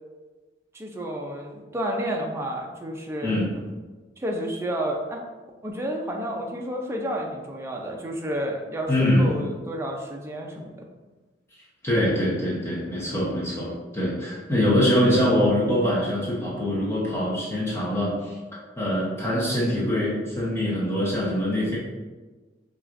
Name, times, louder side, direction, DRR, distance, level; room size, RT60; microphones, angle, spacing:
voice 1, 0.7-3.4 4.2-5.2 5.6-10.9, equal, 15° right, 0 dB, 0.4 m, -30 dB
voice 2, 8.9-9.3 11.8-21.8, left 1 dB, 15° left, -7 dB, 0.8 m, -24 dB
5.9 x 2.4 x 2.5 m, 1.3 s
head